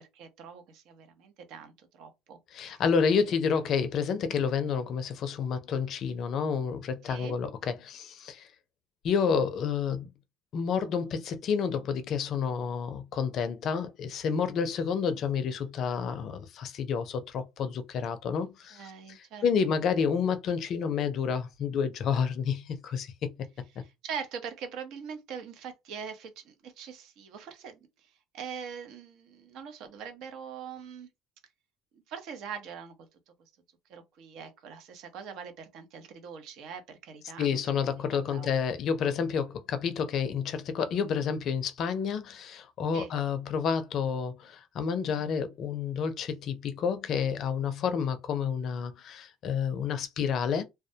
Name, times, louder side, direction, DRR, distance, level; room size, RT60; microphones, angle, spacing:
voice 1, 0.0-2.4 2.7-2.8 7.1-7.4 18.7-19.4 23.7-31.1 31.9-32.9 33.9-37.6 38.3-38.5 42.9-43.1, right 7 dB, 65° right, 0.7 m, -42 dB
voice 2, 2.5-8.5 9.0-10.1 10.5-23.3 37.4-50.6, left 6 dB, 55° left, 0.4 m, -29 dB
2.2 x 2.1 x 2.7 m
supercardioid pair, 105°, 0 cm